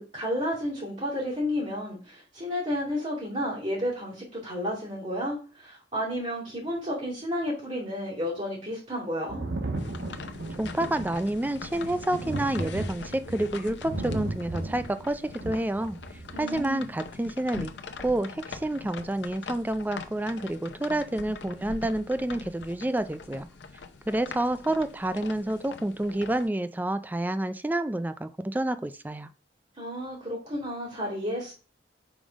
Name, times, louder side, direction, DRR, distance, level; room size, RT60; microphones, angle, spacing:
voice 1, 0.0-9.4 16.3-16.9 29.8-31.5, equal, 40° right, -8 dB, 2.6 m, -32 dB
Thunder, 9.3-16.6 17.8-17.9, right 2 dB, 85° right, 1.0 m, -35 dB
sound 1, 9.8-26.5, left 4 dB, 85° left, 0.7 m, -43 dB
voice 2, 10.6-16.0 16.4-17.7 18.0-23.5 24.1-29.3, right 1 dB, 10° right, 12 dB, 0.3 m, -29 dB
5.1 x 3.7 x 5.1 m, 0.36 s
head